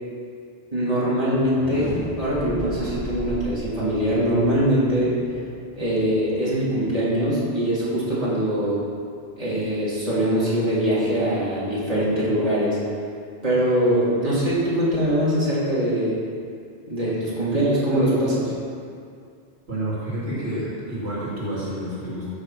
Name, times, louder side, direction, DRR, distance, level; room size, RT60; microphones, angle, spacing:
voice 1, 0.7-5.1 5.7-8.8 9.4-12.8 13.4-16.2 16.9-18.5, equal, 30° right, -9 dB, 3.3 m, -22 dB
sound 1, 1.5-7.3, left 1 dB, 25° left, 1.3 m, -35 dB
voice 2, 19.7-22.3, right 1 dB, 65° right, -8 dB, 3.3 m, -29 dB
15.0 x 6.5 x 5.9 m, 2.3 s
omnidirectional pair, 1.2 m